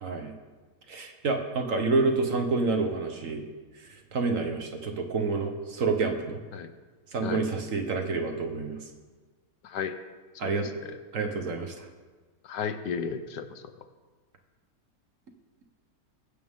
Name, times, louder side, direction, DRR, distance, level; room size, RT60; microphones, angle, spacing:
voice 1, 0.0-0.3 0.9-3.4 4.1-6.4 7.1-8.8 10.4-10.7 11.1-11.9, right 3 dB, 50° right, 4 dB, 1.4 m, -28 dB
voice 2, 9.6-10.0 10.3-10.5 10.8-11.0 12.4-13.6, left 6 dB, 75° left, 9 dB, 1.4 m, -34 dB
21.5 x 8.8 x 3.7 m, 1.4 s
omnidirectional pair, 1.9 m